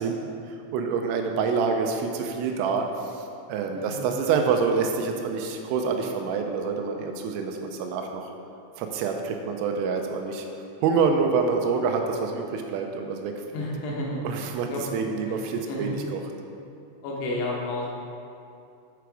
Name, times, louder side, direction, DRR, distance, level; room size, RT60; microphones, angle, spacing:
voice 1, 0.0-8.3 8.8-10.5 10.8-13.3 14.2-16.2, right 5 dB, 85° right, 4 dB, 3.1 m, -27 dB
voice 2, 3.7-4.1 13.5-14.2 14.7-14.8 15.2-15.4 15.7-16.0 17.0-17.9, left 2 dB, 75° left, -3 dB, 3.0 m, -31 dB
6.9 x 6.2 x 4.6 m, 2.5 s
omnidirectional pair, 6.0 m